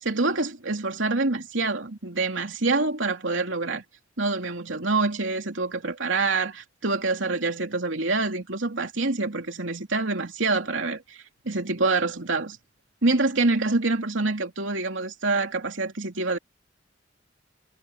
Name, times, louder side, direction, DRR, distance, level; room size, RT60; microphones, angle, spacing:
voice 1, 0.0-3.8 4.2-12.6 13.0-16.4, right 3 dB, 85° right, 2.9 m, -26 dB
head